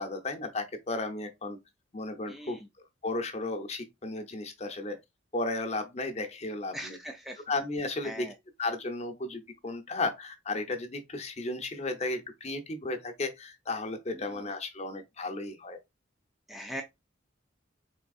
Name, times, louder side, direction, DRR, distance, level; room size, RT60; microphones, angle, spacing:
voice 1, 0.0-1.6 1.9-2.6 3.0-5.0 5.3-7.0 7.5-8.3 8.6-15.8, left 2 dB, 35° left, 0.7 m, -34 dB
voice 2, 2.3-2.7 6.7-7.4 8.0-8.3 14.1-14.4 16.5-16.8, equal, ahead, 0.3 m, -41 dB
4.4 x 3.5 x 2.4 m
head